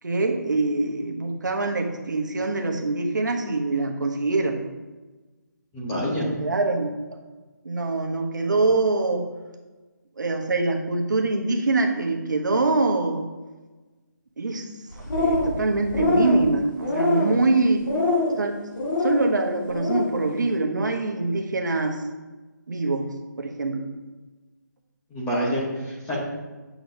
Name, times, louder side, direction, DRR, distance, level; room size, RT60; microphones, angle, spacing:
voice 1, 0.0-4.6 6.2-7.2 7.6-9.3 10.2-13.2 14.4-14.7 15.1-17.8 18.4-18.5 19.0-22.0 22.7-23.1 23.4-23.9, right 3 dB, 65° right, 3 dB, 1.1 m, -24 dB
voice 2, 5.7-6.3 25.1-26.2, equal, 10° left, -6 dB, 1.0 m, -27 dB
sound 1, 14.9-15.6 15.9-16.4 16.8-17.4 17.8-18.3 18.8-19.2 19.6-20.1, left 2 dB, 75° left, 2.1 m, -24 dB
8.5 x 6.0 x 2.8 m, 1.2 s
hypercardioid pair, 170°, 10 cm